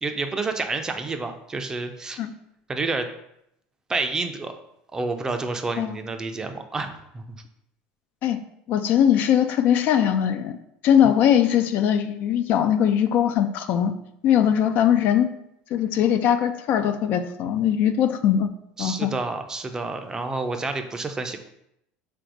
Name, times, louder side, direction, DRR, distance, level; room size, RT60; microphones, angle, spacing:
voice 1, 0.0-2.2 2.7-3.1 3.9-4.5 4.9-6.9 7.1-7.4 11.0-11.1 18.8-21.4, right 3 dB, 15° right, 6 dB, 0.4 m, -29 dB
voice 2, 8.7-10.6 10.8-13.9 14.2-15.3 15.7-18.5 18.8-19.1, left 9 dB, 55° left, 9 dB, 0.3 m, -20 dB
4.2 x 2.6 x 4.6 m, 0.77 s
supercardioid pair, 125°, 4 cm